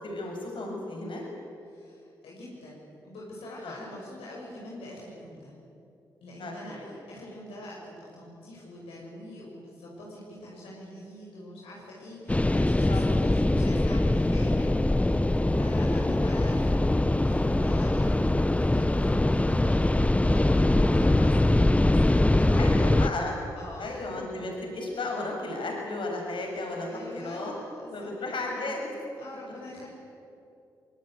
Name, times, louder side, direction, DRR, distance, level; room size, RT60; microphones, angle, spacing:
voice 1, 0.0-1.2 3.6-3.8 6.4-6.9 12.9-13.2 22.6-23.3 23.8-27.5 27.9-28.9, left 2 dB, 65° left, 0 dB, 7.3 m, -34 dB
voice 2, 1.7-5.5 6.2-15.2 15.6-18.1 18.4-22.9 23.6-23.9 26.7-28.1 28.4-28.7 29.2-29.9, left 1 dB, 85° left, -4 dB, 6.4 m, -44 dB
sound 1, 12.3-23.1, left 1 dB, 15° left, 0.9 m, -23 dB
24.0 x 21.5 x 9.4 m, 2.6 s
supercardioid pair, 40°, 9 cm